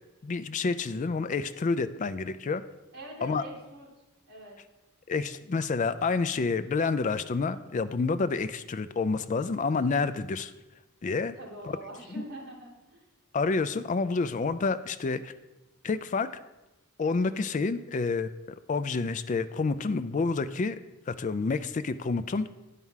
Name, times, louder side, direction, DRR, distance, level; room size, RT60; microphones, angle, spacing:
voice 1, 0.2-2.6 3.2-3.4 5.1-10.5 11.0-11.4 11.6-11.8 12.2-12.3 13.3-15.3 15.8-16.3 17.0-18.3 18.7-20.8 21.1-22.5, left 4 dB, 35° left, 12 dB, 0.3 m, -28 dB
voice 2, 2.9-3.9 4.3-4.6 11.4-13.0, equal, 45° right, -3 dB, 2.2 m, -43 dB
9.6 x 4.6 x 5.6 m, 1.0 s
head